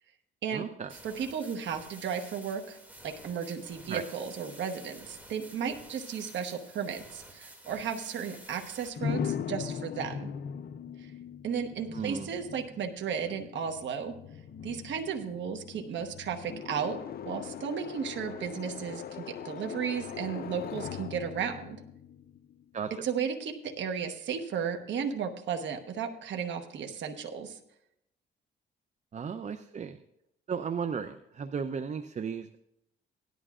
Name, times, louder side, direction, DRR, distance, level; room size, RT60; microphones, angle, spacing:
voice 1, 0.5-0.9 3.9-4.0 11.9-12.3 22.7-22.9 29.1-30.0 30.5-32.6, right 6 dB, 35° right, 9 dB, 0.6 m, -35 dB
sound 1, 0.9-8.9, right 1 dB, 10° right, 2.4 m, -51 dB
voice 2, 1.0-2.8 3.0-10.3 11.4-14.2 14.6-17.0 17.3-21.8 23.0-27.6, right 7 dB, 65° right, 4 dB, 1.2 m, -34 dB
sound 2, 9.0-22.8, left 8 dB, 50° left, 0.5 m, -40 dB
17.0 x 11.0 x 2.5 m, 0.80 s
cardioid pair, 90°, 20 cm